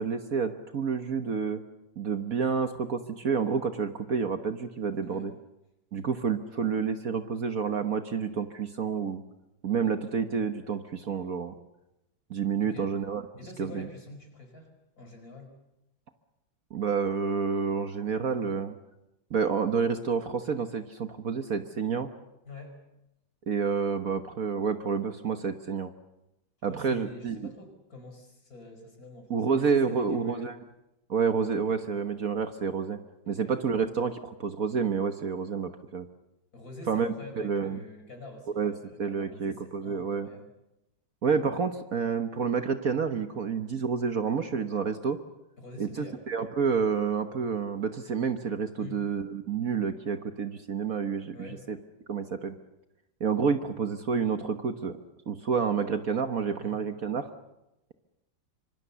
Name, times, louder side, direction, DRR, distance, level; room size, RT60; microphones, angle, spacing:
voice 1, 0.0-1.6 2.0-5.3 5.9-9.2 9.6-11.5 12.3-13.2 13.6-13.9 16.7-18.7 19.3-22.1 23.5-25.9 26.6-27.5 29.3-30.6 31.1-33.0 33.3-36.1 36.9-37.1 37.4-37.8 38.6-38.7 39.0-40.3 41.2-45.2 45.8-51.8 52.1-52.5 53.2-54.9 55.3-57.3, right 6 dB, 50° right, 8 dB, 1.5 m, -29 dB
voice 2, 13.4-14.7 15.0-15.5 22.5-22.8 26.6-30.5 33.3-33.5 36.5-40.5 45.6-46.2 48.8-49.0 51.3-51.6 56.6-56.8, left 2 dB, 50° left, 4 dB, 5.6 m, -46 dB
25.5 x 25.0 x 7.0 m, 0.89 s
omnidirectional pair, 2.0 m